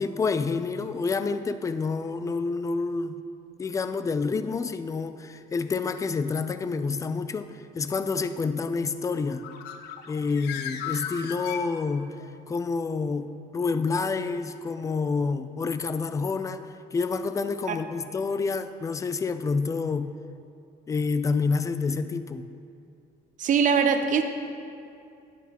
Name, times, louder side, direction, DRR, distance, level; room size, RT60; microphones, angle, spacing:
voice 1, 0.0-3.2 3.6-9.5 10.1-12.1 12.5-16.6 16.9-20.1 20.9-22.5, left 4 dB, 20° left, 10 dB, 0.3 m, -28 dB
Bird, 9.2-12.2, left 8 dB, 85° left, 0.5 m, -37 dB
voice 2, 23.4-24.2, right 6 dB, 50° right, 7 dB, 0.7 m, -22 dB
10.0 x 8.2 x 2.9 m, 2.5 s
cardioid pair, 110°, 17 cm